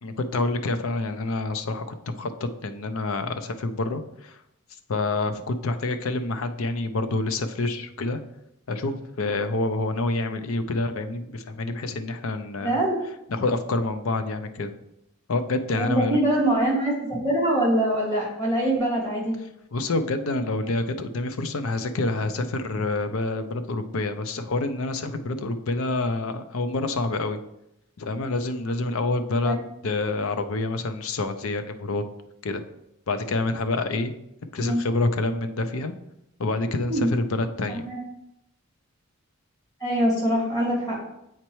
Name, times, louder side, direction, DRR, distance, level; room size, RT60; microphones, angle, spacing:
voice 1, 0.0-4.4 4.9-8.2 8.7-12.8 13.3-14.7 15.3-16.2 19.7-27.4 28.0-29.6 29.8-32.0 32.4-32.6 33.1-34.1 34.5-35.9 36.4-37.8, left 2 dB, 70° left, 9 dB, 0.5 m, -27 dB
voice 2, 12.6-13.0 15.7-19.3 29.4-29.5 34.6-34.8 36.9-37.1 37.7-38.0 39.8-41.0, right 1 dB, 15° left, -4 dB, 1.9 m, -24 dB
7.9 x 4.4 x 3.1 m, 0.84 s
head